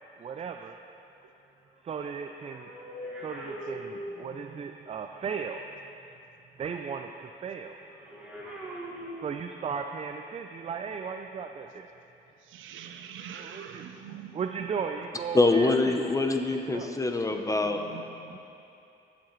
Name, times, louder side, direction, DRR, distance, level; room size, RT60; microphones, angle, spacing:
voice 1, 0.2-0.7 1.8-2.7 3.2-5.6 6.6-7.8 9.2-11.9 13.3-13.9 14.3-15.9 16.7-16.9, right 6 dB, 30° right, 5 dB, 0.4 m, -36 dB
sound 1, 2.0-4.7 7.8-9.8 10.6-10.8, equal, 5° right, 1.8 m, -42 dB
voice 2, 12.5-14.4 17.6-18.4, right 8 dB, 80° right, 7 dB, 0.6 m, -44 dB
voice 3, 15.3-17.8 18.3-18.4, left 2 dB, 15° left, 5 dB, 0.7 m, -24 dB
14.0 x 7.4 x 3.1 m, 2.7 s
cardioid pair, 90°, 20 cm